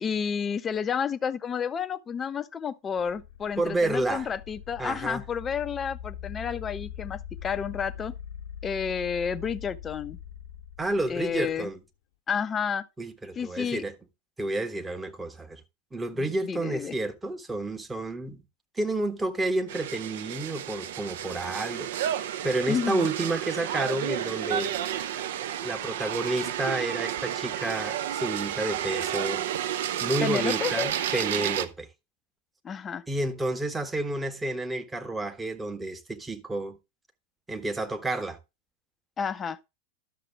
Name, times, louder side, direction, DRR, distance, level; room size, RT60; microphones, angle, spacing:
voice 1, 0.0-8.1 8.6-10.2 11.1-11.7 12.3-12.9 13.4-13.8 16.1-16.9 22.7-23.1 30.2-30.9 32.6-33.0 39.2-39.6, left 7 dB, 20° left, 0.6 m, -30 dB
sound 1, 3.0-11.7, left 9 dB, 55° left, 0.7 m, -42 dB
voice 2, 3.6-4.3 4.8-5.2 10.8-11.8 13.0-13.9 14.4-15.6 15.9-18.4 18.8-21.9 22.4-24.7 25.6-29.4 30.0-31.9 33.1-36.8 37.5-38.4, right 2 dB, 10° right, 1.1 m, -30 dB
sound 2, 19.7-31.7, right 11 dB, 55° right, 0.7 m, -31 dB
11.5 x 6.8 x 3.4 m
figure-of-eight pair, 90°, 0 cm